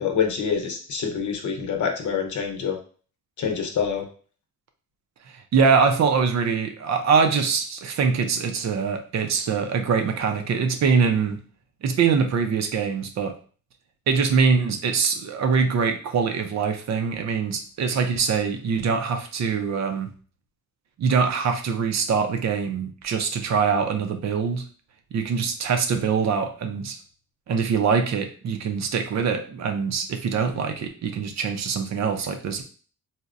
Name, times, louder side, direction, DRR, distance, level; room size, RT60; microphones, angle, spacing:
voice 1, 0.0-2.8 3.4-4.0, left 6 dB, 70° left, 3 dB, 0.8 m, -26 dB
voice 2, 5.3-11.4 11.8-13.3 14.1-20.1 21.0-24.6 25.1-27.0 27.5-32.6, right 5 dB, 60° right, 6 dB, 0.6 m, -23 dB
4.0 x 2.1 x 2.4 m, 0.41 s
wide cardioid pair, 130°, 31 cm